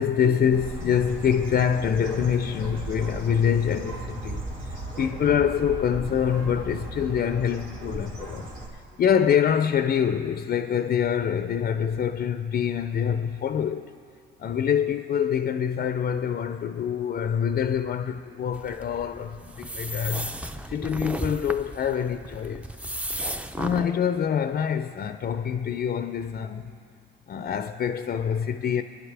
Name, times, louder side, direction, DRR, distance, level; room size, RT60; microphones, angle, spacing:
voice 1, 0.0-13.9 14.4-20.3 20.7-22.6 23.6-26.6 27.3-28.8, left 8 dB, 50° left, 0.5 m, -25 dB
Bird, 0.5-8.7, right 2 dB, 75° right, 2.4 m, -36 dB
sound 1, 18.5-23.9, right 1 dB, 5° right, 0.5 m, -34 dB
24.5 x 10.5 x 3.4 m
cardioid pair, 90°, 20 cm